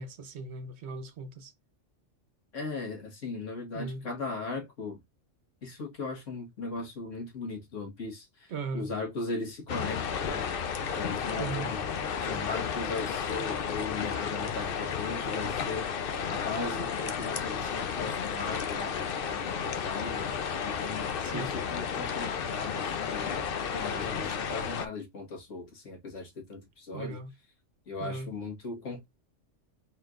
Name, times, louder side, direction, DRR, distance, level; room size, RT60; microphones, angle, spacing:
voice 1, 0.0-1.5 3.7-4.0 8.5-8.9 11.4-11.7 21.2-21.5 26.9-27.3 28.0-28.3, right 4 dB, 65° right, 1.0 m, -38 dB
voice 2, 2.5-5.0 5.6-10.4 10.8-11.9 12.1-15.9 16.3-20.3 20.6-23.5 23.7-27.2 27.9-29.1, left 3 dB, 75° left, 1.9 m, -38 dB
sound 1, 9.7-24.9, left 7 dB, 55° left, 0.7 m, -32 dB
4.3 x 3.7 x 2.4 m
omnidirectional pair, 1.3 m